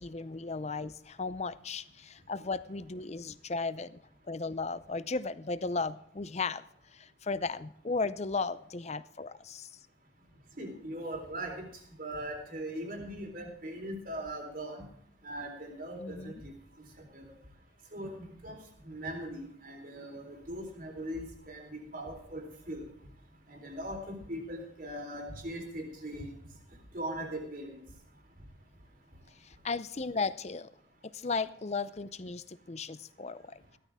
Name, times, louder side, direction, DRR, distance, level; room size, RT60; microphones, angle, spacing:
voice 1, 0.0-4.0 4.3-6.6 6.9-9.7 16.0-16.3 29.4-30.7 31.0-33.8, left 4 dB, 35° left, 15 dB, 0.6 m, -35 dB
voice 2, 10.6-11.7 12.0-14.8 15.2-16.5 17.1-17.3 17.9-18.6 18.8-22.8 23.5-26.3 26.9-27.8, right 1 dB, 45° right, 2 dB, 4.0 m, -40 dB
17.0 x 13.0 x 3.6 m, 0.67 s
head